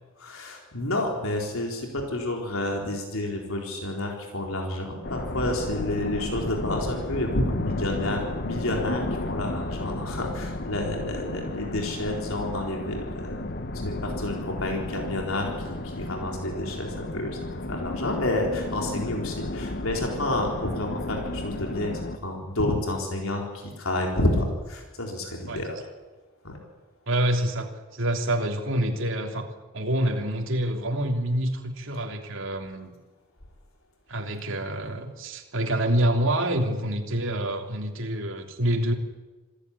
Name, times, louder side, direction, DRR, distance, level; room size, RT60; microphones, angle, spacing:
voice 1, 0.2-13.4 13.8-25.8 26.4-26.6, left 1 dB, 80° left, 1 dB, 4.2 m, -29 dB
sound 1, 5.0-22.2, left 1 dB, 50° left, 1.2 m, -33 dB
voice 2, 27.1-29.5 29.7-32.9 34.1-38.9, right 1 dB, 65° right, 2 dB, 3.3 m, -27 dB
27.0 x 15.0 x 9.9 m, 1.2 s
head